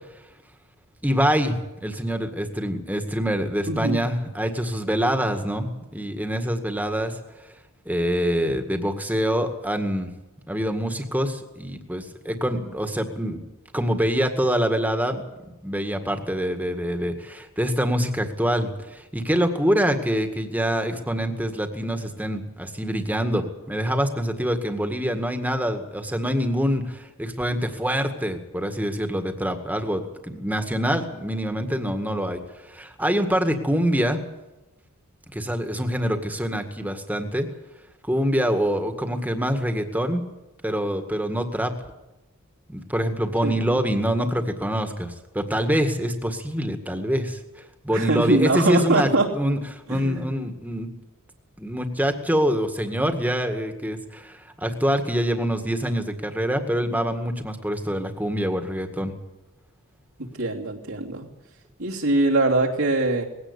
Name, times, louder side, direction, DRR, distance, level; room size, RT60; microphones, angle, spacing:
voice 1, 1.0-1.6 1.8-7.2 7.9-10.1 10.5-13.4 13.7-15.2 15.6-34.2 35.3-37.5 38.1-40.2 40.6-41.7 42.7-49.1 49.4-50.9 51.6-59.1, equal, 10° right, 6 dB, 1.9 m, -25 dB
voice 2, 3.7-4.0 43.4-43.8 47.9-49.3 49.9-50.3 60.3-61.3 61.8-63.3, right 2 dB, 75° right, -3 dB, 3.0 m, -23 dB
20.0 x 16.5 x 8.3 m, 0.98 s
head